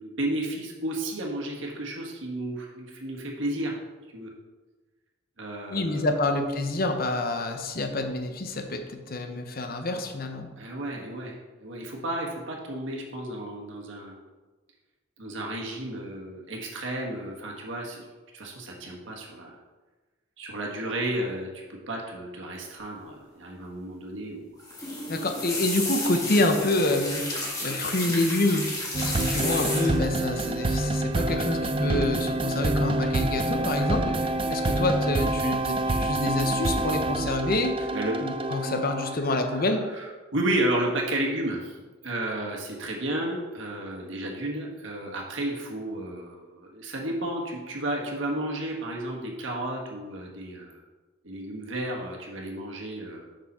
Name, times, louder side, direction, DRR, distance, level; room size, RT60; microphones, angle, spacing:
voice 1, 0.0-3.8 4.1-4.3 5.4-6.1 10.6-14.1 15.2-18.0 18.3-19.6 20.4-21.5 21.9-24.5 37.9-38.1 39.5-41.8 42.0-50.8 51.2-53.3, right 1 dB, 75° right, -1 dB, 1.5 m, -32 dB
voice 2, 5.7-10.5 25.1-37.9 38.2-39.8, left 2 dB, 50° left, 5 dB, 0.8 m, -27 dB
sound 1, 24.6-30.2 31.1-31.4 31.7-32.0 33.2-33.8 34.1-34.7 35.1-35.5 35.9-36.0, left 2 dB, 20° left, 1.6 m, -33 dB
sound 2, 28.9-39.3, right 2 dB, 25° right, 0.3 m, -27 dB
7.0 x 6.1 x 4.3 m, 1.3 s
head